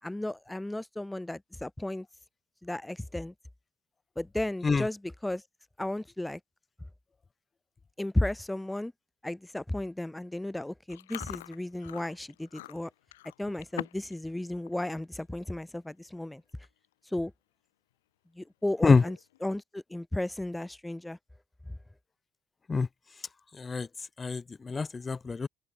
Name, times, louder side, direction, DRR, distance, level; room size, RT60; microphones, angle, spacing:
voice 1, 0.0-2.1 2.6-3.3 4.2-5.4 5.8-6.4 8.0-8.9 9.2-12.9 13.4-16.4 17.0-17.3 18.4-21.2, left 1 dB, 10° left, 2.6 m, -34 dB
Chewing mastication, 10.9-14.2 14.5-14.8 15.2-15.4 16.2-16.3 16.5-16.9 17.3-17.4 18.8-19.4, left 16 dB, 85° left, 4.5 m, -44 dB
voice 2, 23.6-23.9 24.2-25.5, left 4 dB, 30° left, 2.3 m, -25 dB
open air
hypercardioid pair, 60°, 0 cm